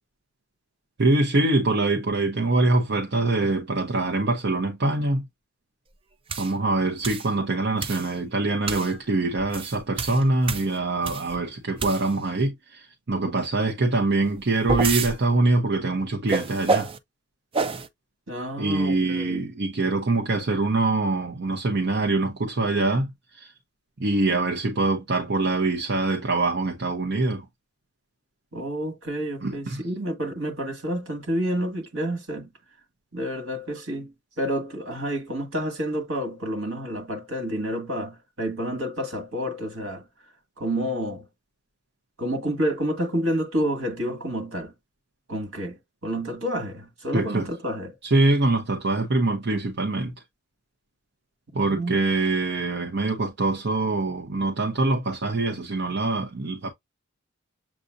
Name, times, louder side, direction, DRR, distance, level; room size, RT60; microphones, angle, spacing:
voice 1, 1.0-5.2 6.4-16.9 18.6-23.5 24.0-27.4 29.4-29.8 47.1-47.5 48.0-50.1 51.5-56.7, right 2 dB, 55° right, 0.8 m, -24 dB
sound 1, 6.3-6.5 7.0-7.3 7.8-8.1 8.7-8.9 9.4-11.4 11.8-12.3 14.2-15.1 16.3-17.0 17.5-17.9, right 4 dB, 25° right, 0.4 m, -28 dB
voice 2, 18.3-19.5 28.5-32.5 33.1-34.1 34.4-40.0 40.6-41.3 42.2-44.7 45.3-45.8 46.0-47.9 51.7-52.0, equal, 80° right, 1.9 m, -29 dB
7.3 x 2.6 x 2.5 m
head